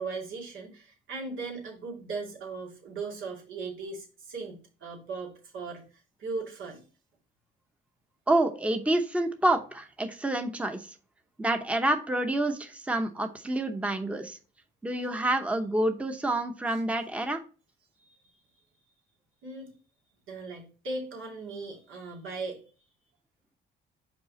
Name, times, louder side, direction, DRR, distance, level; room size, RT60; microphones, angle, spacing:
voice 1, 0.0-5.8 6.2-6.8 18.0-18.2 19.4-19.7 20.3-22.6, right 3 dB, 80° right, -2 dB, 2.6 m, -38 dB
voice 2, 8.3-10.9 11.4-14.4 14.8-17.4, right 1 dB, 5° right, 6 dB, 0.8 m, -28 dB
5.4 x 4.8 x 4.2 m, 0.36 s
cardioid pair, 90°, 20 cm